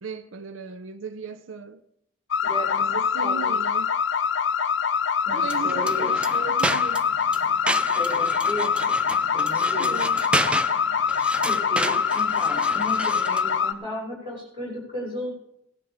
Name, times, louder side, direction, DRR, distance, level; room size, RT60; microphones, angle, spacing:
voice 1, 0.0-1.8 2.8-4.0 5.3-7.1 9.6-10.2, right 5 dB, 85° right, 0.6 m, -37 dB
sound 1, 2.3-13.7, left 6 dB, 70° left, 0.5 m, -24 dB
voice 2, 2.4-3.5 5.2-6.1 8.0-9.0 9.3-10.0 11.4-15.3, equal, 25° right, 5.8 m, -34 dB
sound 2, 5.4-13.5, right 1 dB, 5° right, 0.3 m, -31 dB
17.5 x 12.0 x 3.6 m
head